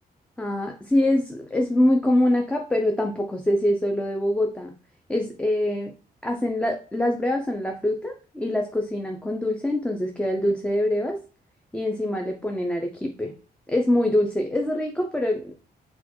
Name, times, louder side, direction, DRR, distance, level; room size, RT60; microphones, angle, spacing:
voice 1, 0.4-4.7 5.1-5.9 6.2-11.2 11.7-13.3 13.7-15.6, left 1 dB, 5° left, 2 dB, 0.4 m, -24 dB
4.2 x 2.2 x 4.3 m, 0.37 s
wide cardioid pair, 150°, 17 cm